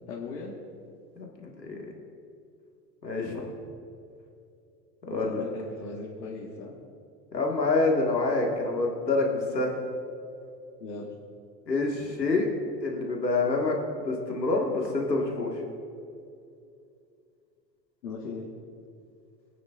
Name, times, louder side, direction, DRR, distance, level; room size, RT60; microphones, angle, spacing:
voice 1, 0.1-0.5 5.1-6.8 10.8-11.1 18.0-18.5, left 4 dB, 60° left, -3 dB, 1.8 m, -38 dB
voice 2, 1.2-1.8 3.0-3.5 5.1-5.4 7.3-9.7 11.7-12.5 12.8-15.6, left 3 dB, 85° left, 0 dB, 2.0 m, -27 dB
24.5 x 9.1 x 2.6 m, 2.5 s
figure-of-eight pair, 85°, 49 cm